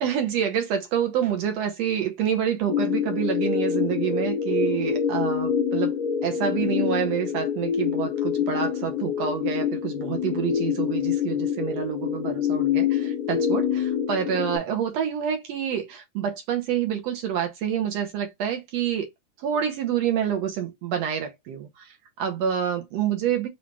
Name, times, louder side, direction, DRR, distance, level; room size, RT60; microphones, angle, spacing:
voice 1, 0.0-19.1 19.4-23.5, right 9 dB, 70° right, 1.8 m, -27 dB
sound 1, 2.7-14.6, left 8 dB, 80° left, 1.5 m, -26 dB
5.2 x 2.4 x 3.2 m
omnidirectional pair, 3.3 m